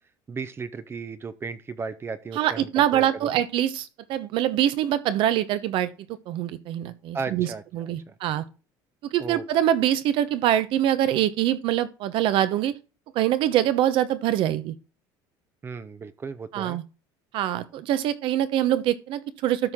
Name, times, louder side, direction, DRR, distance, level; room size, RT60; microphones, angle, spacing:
voice 1, 0.3-3.3 7.1-8.1 9.2-9.4 15.6-16.8, right 5 dB, 25° right, 0.7 m, -35 dB
voice 2, 2.3-5.9 6.3-7.5 7.7-8.4 9.1-12.7 13.1-14.7 16.5-16.8 17.3-19.7, right 12 dB, 60° right, 0.9 m, -24 dB
13.0 x 4.6 x 3.6 m
supercardioid pair, 115°, 10 cm